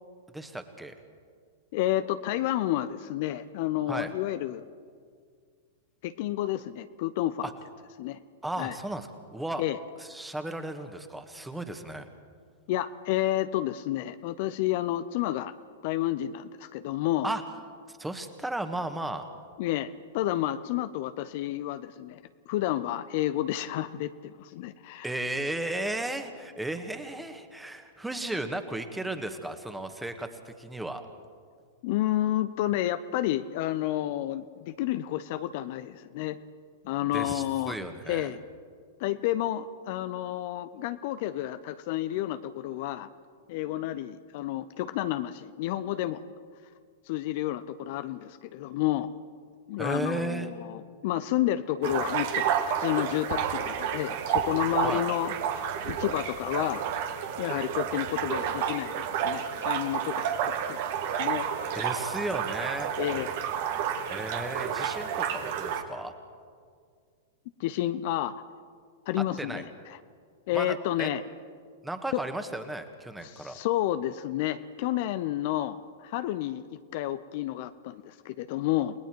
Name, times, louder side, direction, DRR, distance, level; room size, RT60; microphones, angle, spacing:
voice 1, 0.3-0.9 3.9-4.1 7.4-7.5 8.4-9.6 10.0-12.1 17.2-17.4 17.9-19.3 25.0-31.0 37.1-38.3 49.8-50.5 54.8-55.0 61.8-62.9 64.1-66.1 69.4-69.6 70.5-71.1 71.8-73.6, right 1 dB, 5° right, 7 dB, 1.8 m, -34 dB
voice 2, 1.7-4.6 6.0-7.5 8.0-8.2 8.6-8.8 9.6-9.8 12.7-15.5 15.8-17.3 19.6-22.2 22.5-25.1 31.8-36.4 36.8-37.8 38.1-38.4 39.0-43.1 43.5-46.2 47.1-49.1 49.7-52.5 52.8-56.8 57.4-60.8 61.2-61.5 63.0-63.3 67.6-68.4 69.1-70.0 70.5-71.2 72.1-72.2 73.2-76.7 76.9-78.9, left 13 dB, 50° left, 12 dB, 0.7 m, -30 dB
sound 1, 51.8-65.8, right 8 dB, 50° right, 1.8 m, -30 dB
30.0 x 19.0 x 4.7 m, 2.1 s
figure-of-eight pair, 100°, 0 cm